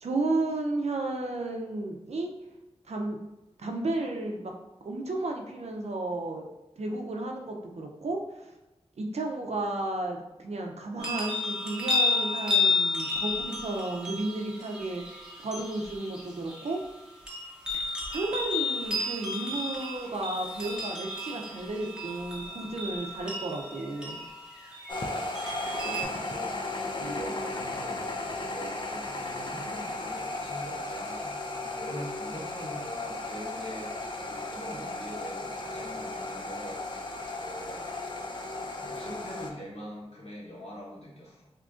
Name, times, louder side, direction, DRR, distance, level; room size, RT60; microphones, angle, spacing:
voice 1, 0.0-2.3 2.9-3.2 3.6-4.5 4.8-6.4 6.8-8.2 9.0-15.0 15.4-16.8 17.7-24.2, right 2 dB, 70° right, 2 dB, 0.5 m, -33 dB
sound 1, 11.0-26.0, left 3 dB, 5° right, 0.7 m, -32 dB
voice 2, 24.9-26.5 26.9-28.1 28.5-33.9 34.3-36.8 37.3-37.9 38.8-41.5, equal, 70° left, -6 dB, 1.2 m, -43 dB
sound 2, 24.9-39.5, left 2 dB, 45° left, 0.4 m, -35 dB
2.9 x 2.5 x 3.5 m, 0.98 s
wide cardioid pair, 80°, 11 cm